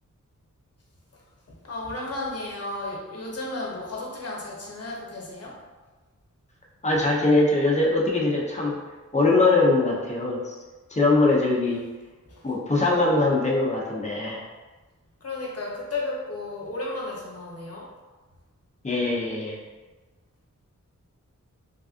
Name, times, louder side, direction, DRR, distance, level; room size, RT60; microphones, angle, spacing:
voice 1, 1.6-5.5 15.2-17.8, left 2 dB, 50° left, -3 dB, 0.9 m, -33 dB
voice 2, 6.8-8.8 9.1-10.4 10.9-11.8 12.4-14.4 18.8-19.6, left 2 dB, 20° left, -3 dB, 0.7 m, -22 dB
3.4 x 2.4 x 2.4 m, 1.2 s
wide cardioid pair, 60°, 31 cm